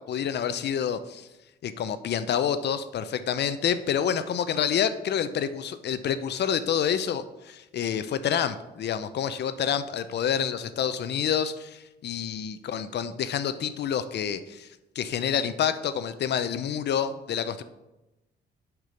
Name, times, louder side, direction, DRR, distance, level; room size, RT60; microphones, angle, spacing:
voice 1, 0.1-1.3 1.6-14.7 15.0-17.6, left 8 dB, 60° left, 12 dB, 0.5 m, -28 dB
6.5 x 6.0 x 5.1 m, 1.0 s
cardioid pair, 90°, 20 cm